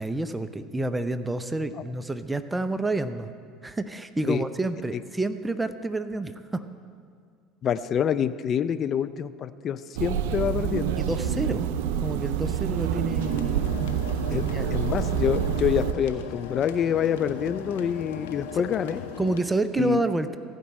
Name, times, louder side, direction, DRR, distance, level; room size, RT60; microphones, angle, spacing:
voice 1, 0.0-3.3 3.6-6.6 11.0-11.7 12.0-13.9 14.3-14.7 18.5-18.6 19.2-20.4, right 2 dB, 10° right, 11 dB, 0.6 m, -29 dB
voice 2, 7.6-11.0 14.3-14.4 14.7-19.0 19.8-20.0, left 8 dB, 45° left, 13 dB, 0.4 m, -26 dB
sound 1, 10.0-15.9, right 9 dB, 70° right, 0.5 m, -27 dB
sound 2, 13.2-19.4, left 7 dB, 80° left, 0.9 m, -38 dB
15.5 x 5.3 x 8.7 m, 2.1 s
hypercardioid pair, 70°, 0 cm